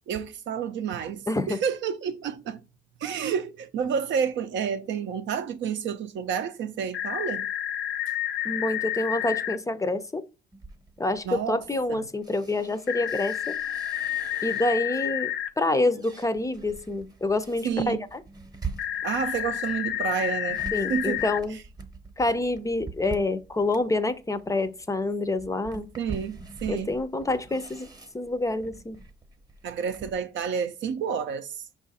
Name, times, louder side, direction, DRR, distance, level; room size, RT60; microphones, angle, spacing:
voice 1, 0.1-2.6 3.0-7.4 11.2-11.6 11.9-12.0 17.6-18.0 19.0-20.6 20.9-21.2 26.0-26.9 29.6-31.6, right 7 dB, 70° right, 0.5 m, -29 dB
voice 2, 1.3-1.6 8.4-10.2 11.0-13.6 14.4-18.2 20.7-21.6 22.2-25.9 26.7-27.9 28.1-29.0, left 2 dB, 15° left, 0.4 m, -27 dB
sound 1, 6.9-9.6 12.9-15.5 18.8-21.4, left 12 dB, 65° left, 0.5 m, -30 dB
sound 2, 10.5-15.0 15.5-30.2, right 4 dB, 20° right, 0.8 m, -44 dB
5.4 x 2.5 x 4.0 m
cardioid pair, 90°, 20 cm